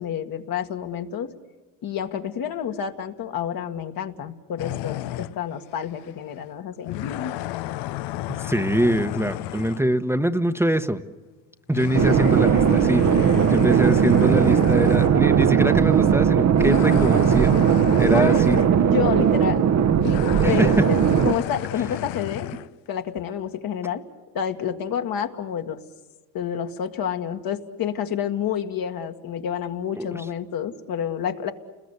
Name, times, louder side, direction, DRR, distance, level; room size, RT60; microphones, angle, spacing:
voice 1, 0.0-1.3 1.8-7.4 18.1-18.4 18.9-19.7 20.0-21.0 21.2-22.5 22.9-24.0 24.3-25.8 26.3-31.5, left 8 dB, 55° left, 5 dB, 1.9 m, -29 dB
sound 1, 4.6-5.4 6.1-6.2 6.9-9.8 11.7-15.2 15.9-16.1 16.6-18.7 20.0-22.7, left 15 dB, 75° left, 0.8 m, -32 dB
voice 2, 8.4-11.0 11.7-17.5 18.0-18.6 20.4-20.7 30.0-30.1, right 1 dB, 5° right, 7 dB, 1.0 m, -23 dB
sound 2, 11.9-21.3, right 8 dB, 40° right, 1.0 m, -18 dB
29.5 x 21.0 x 8.3 m, 1.3 s
supercardioid pair, 90°, 41 cm